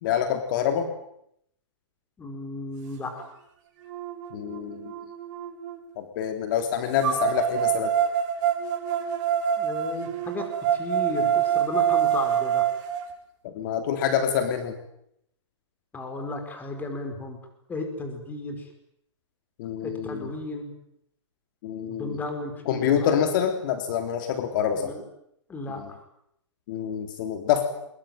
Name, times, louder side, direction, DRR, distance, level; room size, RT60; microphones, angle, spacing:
voice 1, 0.0-0.9 4.3-4.9 6.0-7.9 13.4-14.7 19.6-20.3 21.6-22.2 22.6-24.9 25.7-25.9 26.7-27.6, left 9 dB, 40° left, 6 dB, 3.5 m, -26 dB
voice 2, 2.2-3.3 9.6-12.7 15.9-17.4 17.7-18.7 19.8-20.7 21.9-23.2 24.7-25.0 25.5-25.8, left 2 dB, 10° left, 5 dB, 4.8 m, -34 dB
sound 1, 3.2-3.3 3.9-5.8 7.0-13.0, right 9 dB, 35° right, 6.8 m, -26 dB
24.0 x 22.0 x 9.3 m, 0.74 s
hypercardioid pair, 150°, 16 cm